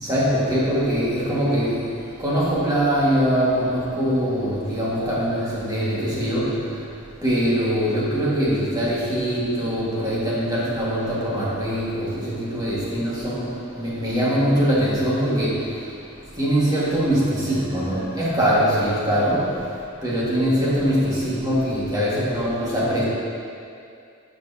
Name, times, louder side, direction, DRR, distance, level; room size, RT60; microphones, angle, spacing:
voice 1, 0.0-6.9 7.2-16.0 16.3-23.0, equal, 20° right, -8 dB, 1.6 m, -22 dB
15.0 x 5.3 x 2.8 m, 2.4 s
head